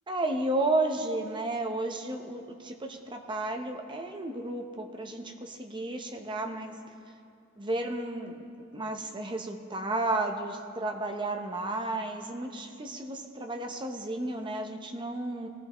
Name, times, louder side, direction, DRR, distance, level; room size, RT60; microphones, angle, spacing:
voice 1, 0.1-6.8 7.6-8.4 8.7-15.5, right 2 dB, 20° right, 4 dB, 0.8 m, -32 dB
20.5 x 15.0 x 3.1 m, 2.5 s
head